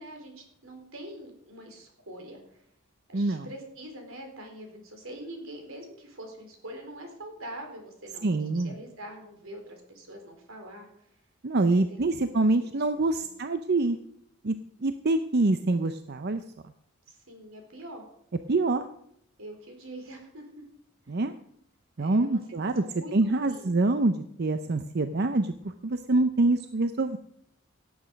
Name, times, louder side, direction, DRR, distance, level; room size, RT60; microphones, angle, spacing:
voice 1, 0.0-2.4 3.1-10.9 11.7-11.8 12.1-12.4 13.1-13.2 17.1-18.0 19.4-20.6 22.0-22.4 22.8-23.8, right 1 dB, 85° right, 3 dB, 3.9 m, -44 dB
voice 2, 3.1-3.5 8.2-8.7 11.4-14.0 14.4-14.5 14.8-16.4 18.5-18.9 21.1-21.3 22.0-22.8 23.1-27.2, right 2 dB, 50° right, 9 dB, 0.6 m, -25 dB
17.0 x 8.7 x 5.2 m, 0.71 s
head